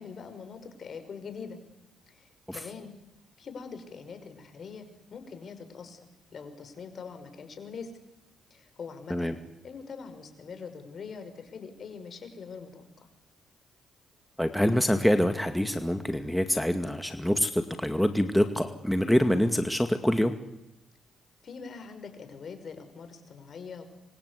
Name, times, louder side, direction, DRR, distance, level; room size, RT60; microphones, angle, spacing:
voice 1, 0.0-1.6 2.1-2.9 3.4-6.1 6.3-7.9 8.5-9.4 9.6-13.1 21.4-23.8, left 5 dB, 55° left, 8 dB, 5.6 m, -43 dB
voice 2, 14.4-20.4, equal, 5° left, 7 dB, 2.1 m, -25 dB
27.0 x 24.5 x 8.4 m, 0.90 s
supercardioid pair, 70°, 0 cm